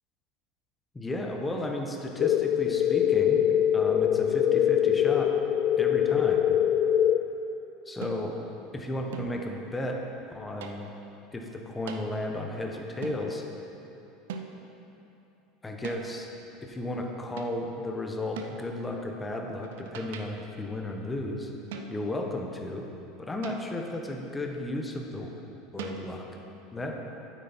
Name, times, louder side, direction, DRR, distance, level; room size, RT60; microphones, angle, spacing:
voice 1, 0.9-3.4 3.7-5.3 5.8-6.6 7.9-8.4 8.7-10.0 10.3-10.9 11.3-13.4 15.6-16.3 16.6-21.5 21.9-22.9 23.2-25.3 25.7-26.3 26.7-27.0, left 1 dB, 15° left, 2 dB, 1.2 m, -34 dB
sound 1, 2.2-7.2, left 10 dB, 55° left, 0.3 m, -23 dB
sound 2, 8.0-8.4 9.1-9.5 10.6-11.0 11.9-12.2 13.0-13.3 14.3-14.8 15.8-16.2 17.4-17.7 18.4-18.7 19.6-20.5 21.7-22.2 23.4-24.0 25.8-26.0, right 5 dB, 80° right, 0.7 m, -41 dB
9.2 x 7.9 x 4.4 m, 2.9 s
hypercardioid pair, 90°, 0 cm